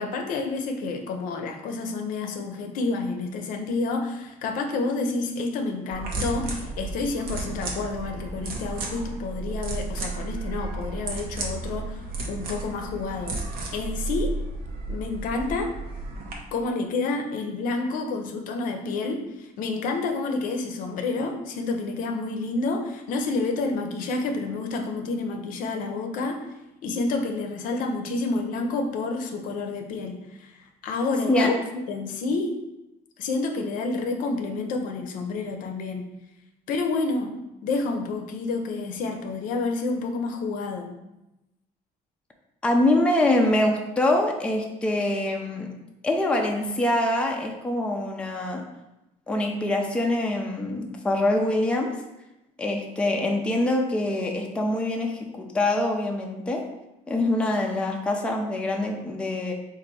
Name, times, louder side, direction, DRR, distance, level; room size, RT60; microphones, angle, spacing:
voice 1, 0.0-12.0 12.3-13.4 13.7-14.3 14.9-15.7 16.5-26.5 26.8-31.6 31.9-32.6 33.2-36.1 36.7-37.4 37.6-40.9, left 3 dB, 65° left, 5 dB, 0.6 m, -29 dB
sound 1, 5.9-16.3, right 3 dB, 85° right, 0.8 m, -33 dB
voice 2, 42.6-45.7 46.0-48.6 49.3-51.9 52.6-56.6 57.1-59.5, left 1 dB, 5° left, 1 dB, 0.4 m, -24 dB
4.0 x 2.5 x 4.6 m, 0.94 s
cardioid pair, 145°, 15 cm